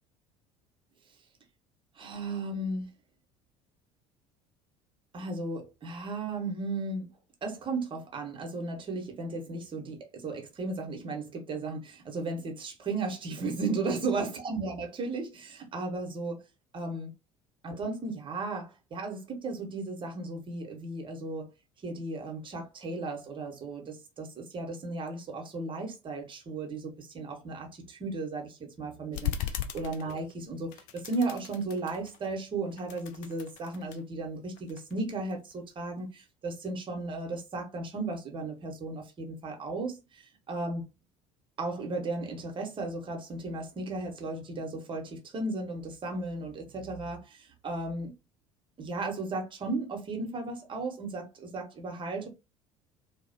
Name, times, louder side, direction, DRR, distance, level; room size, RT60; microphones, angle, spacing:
voice 1, 2.0-2.9 5.1-7.1 7.4-16.4 16.7-17.1 17.6-21.5 21.8-40.8 41.6-48.1 48.8-52.3, right 3 dB, 30° right, 0.9 m, -35 dB
sound 1, 29.1-30.4 30.7-32.3 32.7-34.0 34.6-35.7, left 10 dB, 55° left, 0.4 m, -38 dB
2.3 x 2.1 x 2.5 m
figure-of-eight pair, 65°, 16 cm